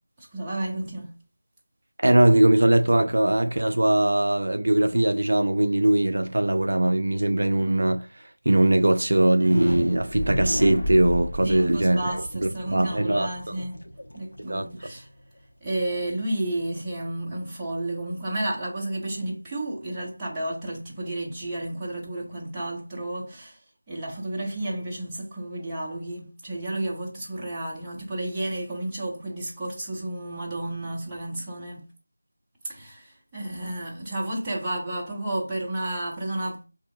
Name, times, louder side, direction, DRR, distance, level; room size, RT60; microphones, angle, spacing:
voice 1, 0.2-1.1 11.4-13.8 14.1-15.1 15.6-23.6 23.9-31.9 32.6-36.6, right 1 dB, 5° right, 0.6 m, -32 dB
voice 2, 2.0-8.0 8.5-13.3 14.5-14.7, right 1 dB, 55° right, 0.3 m, -21 dB
sound 1, 9.3-15.1, left 1 dB, 60° left, 0.9 m, -32 dB
3.7 x 2.7 x 2.6 m
figure-of-eight pair, 175°, 0 cm